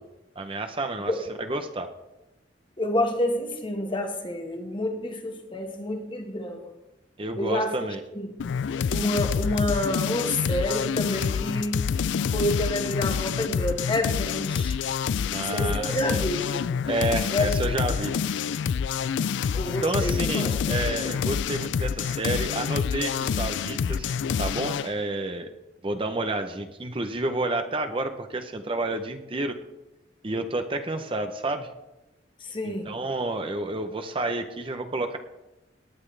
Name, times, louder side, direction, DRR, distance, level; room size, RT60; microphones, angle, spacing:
voice 1, 0.4-1.1 1.4-1.9 7.2-8.0 15.3-16.2 16.9-18.1 19.7-25.5 25.8-29.5 30.2-31.7 32.6-35.2, right 2 dB, 30° right, 6 dB, 0.7 m, -30 dB
voice 2, 2.8-6.7 7.4-8.3 8.9-11.9 12.3-14.8 15.5-16.6 17.3-17.5 17.8-17.9 19.5-20.9 32.4-32.9, left 1 dB, 25° left, 4 dB, 1.5 m, -28 dB
sound 1, 8.4-24.9, left 7 dB, 80° left, 0.3 m, -27 dB
18.5 x 9.6 x 3.3 m, 0.98 s
head